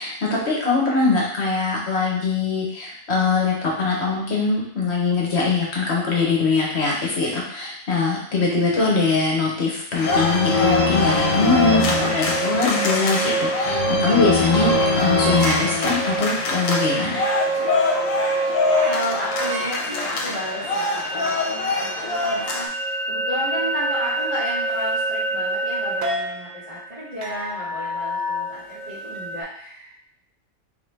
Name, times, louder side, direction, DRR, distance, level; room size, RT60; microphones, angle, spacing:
voice 1, 0.0-17.3, left 4 dB, 55° left, -2 dB, 1.2 m, -22 dB
sound 1, 9.9-22.7, left 3 dB, 75° left, 1.1 m, -23 dB
sound 2, 10.1-29.4, right 2 dB, 55° right, 0.5 m, -27 dB
voice 2, 18.8-29.9, equal, 30° right, -13 dB, 1.7 m, -32 dB
3.7 x 3.3 x 3.3 m, 0.64 s
omnidirectional pair, 1.4 m